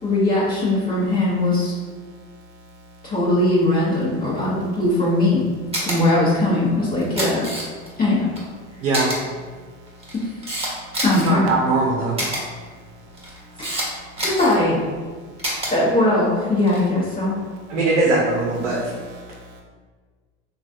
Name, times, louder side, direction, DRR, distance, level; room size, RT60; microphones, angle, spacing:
voice 1, 0.0-1.7 3.0-5.5 5.8-7.5 8.0-8.3 10.1-10.3 11.0-11.4 13.6-13.9 14.2-14.8 15.7-17.4, left 2 dB, 25° left, 0.8 m, -20 dB
Camera, 5.7-6.0 7.0-7.9 8.4-8.5 8.9-9.2 9.9-11.3 12.2-12.4 13.1-13.9 14.2-14.6 15.4-15.7 16.6-16.9, right 1 dB, 15° right, 1.1 m, -26 dB
voice 2, 8.8-9.1 11.2-12.2 17.7-18.8, right 2 dB, 85° right, 0.7 m, -20 dB
voice 3, 18.6-19.6, equal, 40° right, 0.7 m, -43 dB
3.1 x 2.4 x 2.6 m
hypercardioid pair, 85°, 36 cm